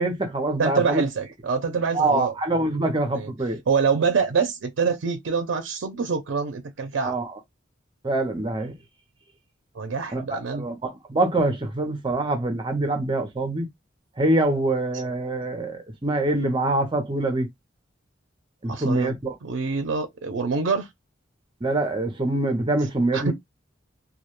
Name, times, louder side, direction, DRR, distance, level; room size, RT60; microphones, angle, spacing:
voice 1, 0.0-1.0 1.9-3.6 7.0-7.4 8.0-8.7 10.1-13.7 14.2-17.5 18.6-19.3 21.6-23.3, right 2 dB, 25° right, 0.6 m, -25 dB
voice 2, 0.6-2.3 3.1-3.3 3.7-7.2 9.7-10.6 18.7-19.1 19.4-20.9 23.1-23.3, right 5 dB, 75° right, 0.5 m, -25 dB
2.2 x 2.1 x 3.0 m
head